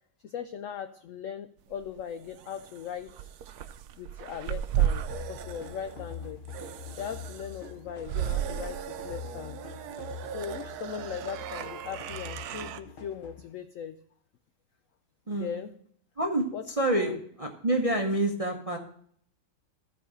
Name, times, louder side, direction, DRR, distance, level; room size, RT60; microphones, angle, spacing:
voice 1, 0.2-3.3 3.9-6.4 6.9-9.6 10.3-14.0 15.3-15.7 16.5-16.6 16.9-17.2, left 8 dB, 80° left, 9 dB, 0.7 m, -39 dB
sound 1, 1.7-12.8, right 10 dB, 70° right, 1.0 m, -35 dB
sound 2, 5.1-13.5, left 5 dB, 45° left, 0.7 m, -44 dB
voice 2, 15.3-15.6 16.2-18.8, right 1 dB, 30° right, 2 dB, 0.6 m, -28 dB
14.0 x 4.8 x 4.9 m, 0.63 s
omnidirectional pair, 1.9 m